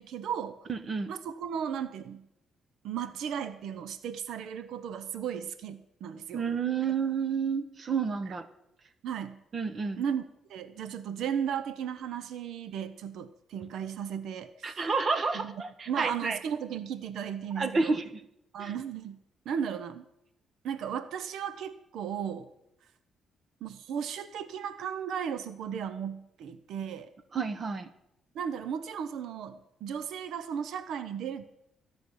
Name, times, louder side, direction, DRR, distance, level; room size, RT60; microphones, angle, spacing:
voice 1, 0.0-0.6 1.1-2.3 2.8-6.5 9.0-9.4 10.0-10.2 10.5-14.8 15.3-15.5 15.9-18.0 18.5-20.1 20.6-22.5 23.6-27.1 28.3-31.4, right 8 dB, 75° right, 11 dB, 0.9 m, -35 dB
voice 2, 0.7-1.1 6.3-8.5 9.5-10.0 14.6-16.4 17.6-18.0 18.6-18.7 27.3-27.9, right 5 dB, 40° right, 10 dB, 1.4 m, -30 dB
13.5 x 6.2 x 9.9 m, 0.84 s
cardioid pair, 90°, 0 cm